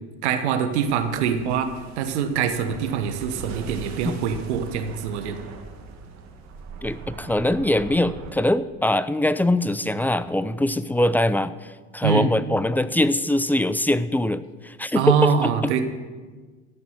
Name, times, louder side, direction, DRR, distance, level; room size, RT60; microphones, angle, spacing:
voice 1, 0.2-1.7 2.0-5.4 12.0-12.3 14.9-15.8, right 7 dB, 75° right, 8 dB, 1.2 m, -24 dB
sound 1, 0.7-8.3, right 4 dB, 55° right, 1.8 m, -40 dB
voice 2, 6.8-15.5, left 1 dB, 5° left, 15 dB, 0.4 m, -23 dB
13.5 x 6.0 x 7.9 m, 1.4 s
hypercardioid pair, 70°, 33 cm